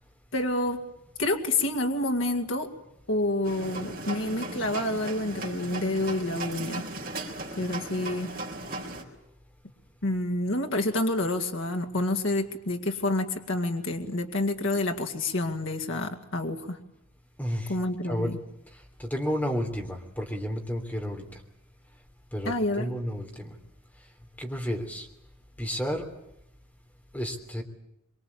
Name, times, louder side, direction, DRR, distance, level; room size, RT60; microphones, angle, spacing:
voice 1, 0.3-0.8 1.2-2.7 3.1-6.8 7.6-8.3 10.0-16.8 17.7-18.4 22.5-22.9, left 1 dB, 60° left, 3 dB, 2.2 m, -28 dB
sound 1, 3.4-9.0, right 2 dB, 40° right, 4.1 m, -37 dB
voice 2, 17.4-17.7 18.1-18.3 19.0-21.2 22.3-23.5 24.4-25.1 25.6-26.0 27.1-27.6, equal, 10° left, 2 dB, 3.3 m, -31 dB
24.5 x 24.5 x 8.6 m, 0.82 s
head